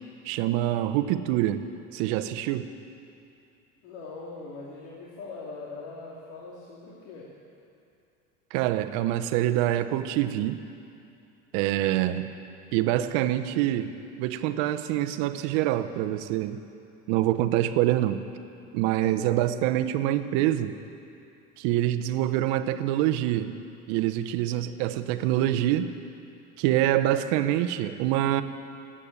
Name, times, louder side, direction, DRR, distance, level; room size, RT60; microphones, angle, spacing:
voice 1, 0.2-1.6 1.9-2.7 8.5-10.6 11.5-12.3 12.7-13.9 14.2-16.6 17.1-18.2 18.7-20.7 21.6-23.5 23.9-25.9 26.6-28.4, right 13 dB, 70° right, 10 dB, 0.9 m, -25 dB
voice 2, 3.8-7.3 19.2-19.4, left 3 dB, 70° left, -5 dB, 2.6 m, -41 dB
18.5 x 8.7 x 8.8 m, 2.6 s
supercardioid pair, 120°, 35 cm